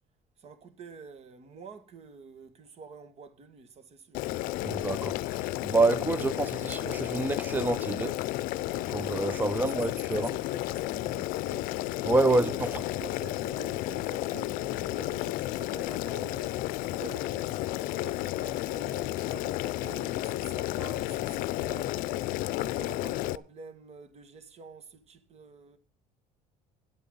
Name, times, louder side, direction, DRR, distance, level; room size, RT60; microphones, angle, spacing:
voice 1, 0.4-4.2 9.5-11.7 12.2-16.6 16.9-22.3 22.6-25.8, right 5 dB, 45° right, 1.9 m, -48 dB
Boiling, 4.1-23.4, left 16 dB, 70° left, 0.6 m, -32 dB
voice 2, 4.6-8.2 8.8-10.3 12.0-12.5, right 2 dB, 10° right, 0.6 m, -27 dB
12.0 x 8.4 x 5.5 m
cardioid pair, 115°, 15 cm